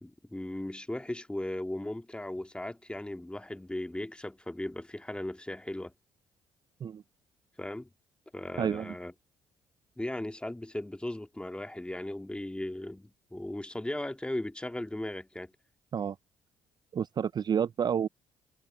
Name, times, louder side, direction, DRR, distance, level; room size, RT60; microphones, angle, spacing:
voice 1, 0.0-5.9 7.6-7.9 8.3-9.1 10.0-15.5, left 1 dB, 10° left, 2.1 m, -37 dB
voice 2, 8.6-8.9 15.9-16.2 16.9-18.1, right 8 dB, 40° right, 0.4 m, -29 dB
hypercardioid pair, 50°, 11 cm